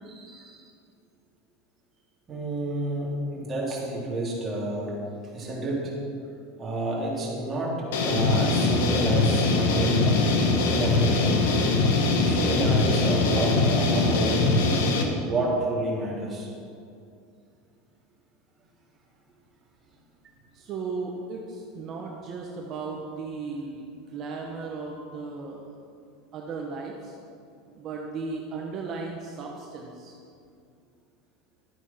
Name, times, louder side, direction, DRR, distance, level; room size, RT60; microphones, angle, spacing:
voice 1, 0.1-0.6 2.3-4.9 5.3-5.9 6.6-10.3 10.8-11.7 12.2-14.4 15.2-16.5, right 2 dB, 15° right, -5 dB, 3.3 m, -30 dB
sound 1, 7.9-15.0, left 3 dB, 80° left, 1.8 m, -22 dB
voice 2, 20.5-23.8 24.1-25.6 26.3-27.1 27.7-30.1, right 4 dB, 35° right, 0 dB, 1.2 m, -35 dB
12.5 x 9.1 x 5.8 m, 2.4 s
supercardioid pair, 150°, 0 cm